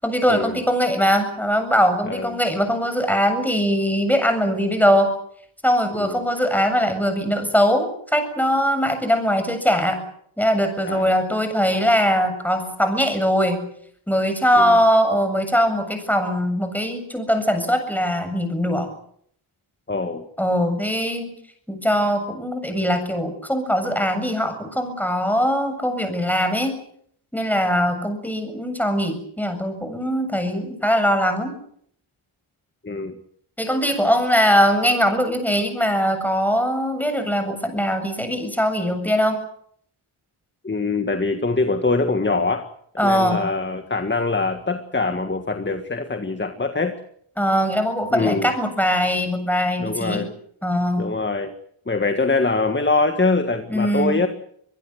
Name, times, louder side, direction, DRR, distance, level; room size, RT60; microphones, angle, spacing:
voice 1, 0.0-5.1 5.6-10.0 10.4-13.6 14.1-18.9 20.4-21.3 21.7-26.8 27.3-31.5 33.6-39.4 43.0-43.4 47.4-50.2 50.6-51.1 53.7-54.2, equal, 5° left, 7 dB, 7.5 m, -21 dB
voice 2, 2.1-2.4 6.0-6.2 10.9-11.2 14.6-14.8 19.9-20.2 32.8-33.2 40.6-42.7 42.9-47.0 48.1-48.5 49.8-50.3 51.0-51.5 51.9-54.3, left 3 dB, 20° left, 7 dB, 1.9 m, -23 dB
24.5 x 21.5 x 8.1 m, 0.68 s
wide cardioid pair, 100°, 50 cm